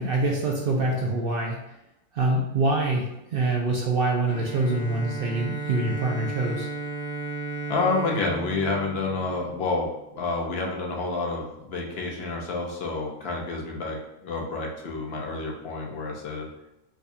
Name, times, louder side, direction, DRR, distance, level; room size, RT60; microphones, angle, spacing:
voice 1, 0.0-1.6 2.1-6.7, right 2 dB, 65° right, -1 dB, 0.6 m, -25 dB
Bowed string instrument, 4.3-9.9, right 3 dB, 10° right, 1.1 m, -35 dB
voice 2, 7.7-16.5, left 3 dB, 55° left, -1 dB, 0.9 m, -29 dB
4.8 x 2.3 x 2.7 m, 0.88 s
omnidirectional pair, 1.4 m